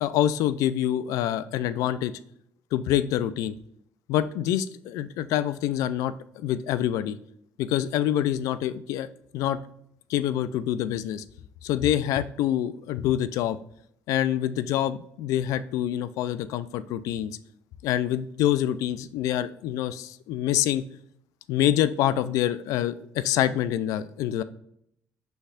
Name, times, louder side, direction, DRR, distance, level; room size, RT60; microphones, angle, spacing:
voice 1, 0.0-2.1 2.7-3.5 4.1-7.2 7.6-9.1 9.3-9.6 10.1-11.2 11.6-13.6 14.1-17.3 17.8-20.8 21.5-24.4, left 11 dB, 80° left, 14 dB, 0.3 m, -26 dB
6.2 x 3.4 x 2.4 m, 0.70 s
cardioid pair, 90°, 6 cm